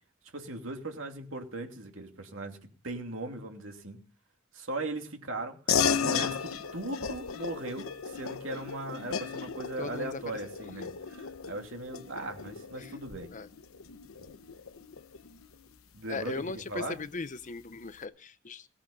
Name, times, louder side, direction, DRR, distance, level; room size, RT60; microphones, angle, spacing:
voice 1, 0.3-4.0 4.5-5.7 6.0-13.3 15.9-17.0, right 2 dB, 70° right, 2.8 m, -38 dB
sound 1, 5.7-15.5, left 6 dB, 90° left, 0.9 m, -34 dB
voice 2, 9.8-10.4 12.8-12.9 13.3-13.5 16.1-18.7, left 3 dB, 40° left, 0.7 m, -38 dB
18.0 x 8.6 x 5.3 m
head